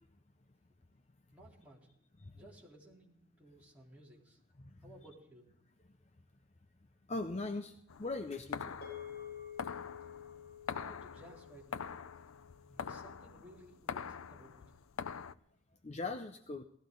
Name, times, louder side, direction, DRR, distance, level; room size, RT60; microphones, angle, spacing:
voice 1, 1.3-1.9 2.3-4.4 4.8-5.5 10.7-11.9 12.8-14.6, right 1 dB, 5° right, -6 dB, 3.7 m, -57 dB
voice 2, 7.1-8.8 15.8-16.6, left 3 dB, 30° left, 7 dB, 0.6 m, -40 dB
sound 1, 7.9-15.3, left 6 dB, 90° left, 0.5 m, -44 dB
sound 2, 8.8-13.3, left 8 dB, 50° left, 6.9 m, -50 dB
18.0 x 14.5 x 3.9 m, 0.72 s
head